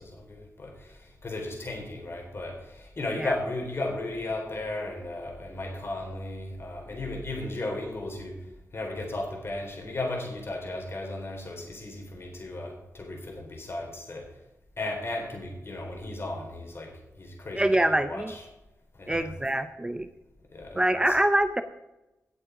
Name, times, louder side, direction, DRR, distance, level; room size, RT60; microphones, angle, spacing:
voice 1, 0.0-8.4 8.7-14.3 14.8-18.5 18.9-19.3 20.5-21.2, left 2 dB, 45° left, 2 dB, 3.8 m, -35 dB
voice 2, 17.5-18.3 19.1-20.1 20.7-21.6, right 1 dB, 15° right, 10 dB, 0.6 m, -25 dB
17.5 x 6.8 x 5.0 m, 0.98 s
wide cardioid pair, 95°, 6 cm